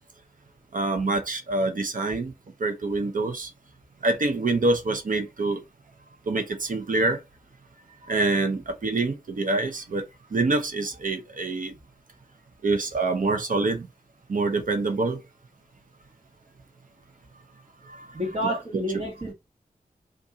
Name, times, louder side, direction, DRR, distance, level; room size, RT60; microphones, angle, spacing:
voice 1, 0.7-2.3 2.6-3.5 4.0-5.6 6.3-7.2 8.1-11.7 12.6-13.9 14.3-15.2 17.8-18.1 18.4-18.8, right 3 dB, 65° right, 0.8 m, -26 dB
voice 2, 18.1-19.3, equal, 40° right, 1.5 m, -29 dB
2.7 x 2.6 x 3.7 m
wide cardioid pair, 105°, 15 cm